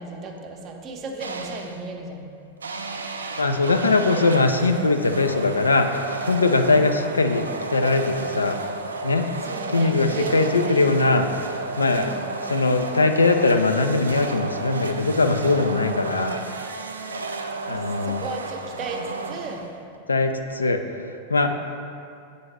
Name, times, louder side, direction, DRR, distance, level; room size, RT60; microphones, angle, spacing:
voice 1, 0.0-2.3 9.4-10.9 11.9-12.3 17.7-19.7, right 3 dB, 30° right, 2 dB, 0.6 m, -35 dB
sound 1, 1.2-1.9 2.6-20.0, right 3 dB, 75° right, 0.3 m, -33 dB
voice 2, 3.4-8.6 9.0-9.3 9.7-11.3 11.5-12.1 12.4-16.4 17.7-18.2 20.1-20.8 21.3-21.5, left 3 dB, 75° left, 7 dB, 0.3 m, -21 dB
7.7 x 3.9 x 3.2 m, 2.4 s
figure-of-eight pair, 90°, 0 cm